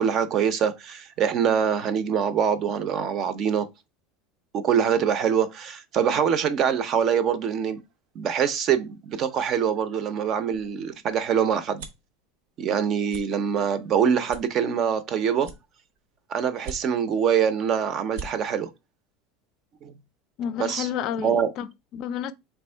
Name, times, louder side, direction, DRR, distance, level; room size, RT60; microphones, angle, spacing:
voice 1, 0.0-3.7 4.5-7.8 8.2-11.8 12.6-15.5 16.3-18.7 19.8-19.9 20.6-20.9 21.2-21.5, right 7 dB, 40° right, 0.5 m, -24 dB
sound 1, 10.5-12.1 12.6-12.8 13.1-13.3 13.7-13.8 14.3-15.0 15.4-16.1 16.5-17.2 17.6-17.7 18.0-18.3, right 4 dB, 85° right, 0.9 m, -40 dB
voice 2, 20.4-22.3, left 9 dB, 50° left, 0.4 m, -31 dB
3.5 x 3.0 x 4.3 m
supercardioid pair, 145°, 0 cm